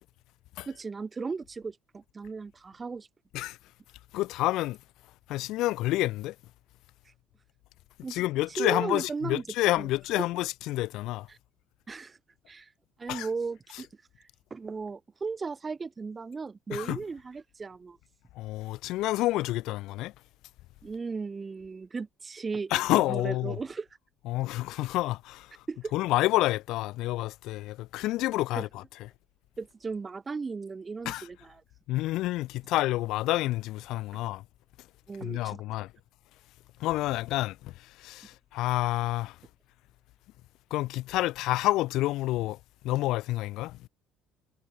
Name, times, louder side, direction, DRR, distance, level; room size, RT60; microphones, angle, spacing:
voice 1, 0.7-3.1 8.0-8.2 8.6-9.4 9.8-9.9 10.2-10.3 11.9-12.2 12.5-12.7 13.0-13.9 14.5-18.0 20.8-22.8 23.1-23.9 25.7-25.9 28.5-28.6 29.6-31.5 34.1-34.2 35.1-35.6, right 4 dB, 20° right, 6.4 m, -36 dB
voice 2, 4.1-4.8 5.3-6.3 8.1-11.3 13.1-13.3 16.7-17.0 18.3-20.1 22.7-23.6 24.2-25.6 25.9-28.8 31.0-31.3 31.9-34.4 35.2-35.9 36.8-39.4 40.7-42.6 42.8-43.8, left 17 dB, 70° left, 1.7 m, -29 dB
cardioid pair, 140°, 0 cm